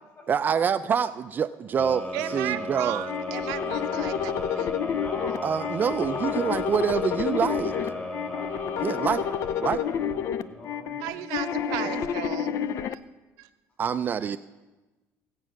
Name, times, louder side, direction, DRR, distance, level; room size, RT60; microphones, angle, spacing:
voice 1, 0.3-3.0 5.4-7.7 8.8-9.2 9.6-9.8 11.8-12.1 13.8-14.4, right 7 dB, 30° right, 10 dB, 0.4 m, -26 dB
Long Uh Lower, 1.8-10.7, left 2 dB, 15° left, 1.0 m, -36 dB
voice 2, 2.1-4.8 11.0-13.0 13.4-13.5, right 15 dB, 90° right, 7 dB, 0.8 m, -35 dB
sound 1, 3.1-12.9, left 8 dB, 55° left, 0.5 m, -30 dB
voice 3, 4.9-6.5 7.6-11.2, left 2 dB, 40° left, 2 dB, 4.7 m, -43 dB
16.5 x 8.2 x 6.3 m, 1.1 s
cardioid pair, 130°, 6 cm